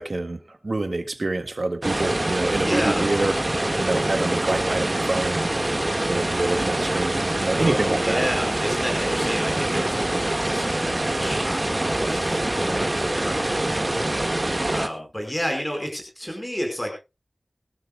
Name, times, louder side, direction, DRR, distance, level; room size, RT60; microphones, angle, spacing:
voice 1, 0.0-3.3 3.7-8.2, right 2 dB, 65° right, 8 dB, 1.7 m, -27 dB
sound 1, 1.8-14.9, right 1 dB, 35° right, 1.7 m, -25 dB
voice 2, 2.6-3.1 7.6-17.0, equal, 15° left, 3 dB, 4.7 m, -31 dB
22.5 x 12.5 x 2.3 m, 0.28 s
wide cardioid pair, 50°, 0 cm